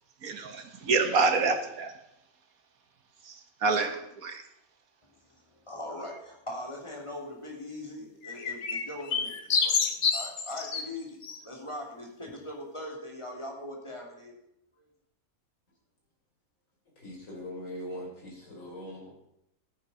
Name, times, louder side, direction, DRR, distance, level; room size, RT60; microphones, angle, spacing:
voice 1, 0.2-1.9 3.3-3.4 3.6-4.4, right 4 dB, 75° right, 7 dB, 1.8 m, -27 dB
voice 2, 5.3-14.3, left 1 dB, 20° left, 0 dB, 2.9 m, -41 dB
sound 1, 8.2-10.8 11.2-11.4, left 5 dB, 85° left, 1.7 m, -28 dB
voice 3, 17.0-19.1, equal, 60° left, -4 dB, 4.5 m, -41 dB
14.0 x 8.9 x 5.6 m, 0.80 s
omnidirectional pair, 1.5 m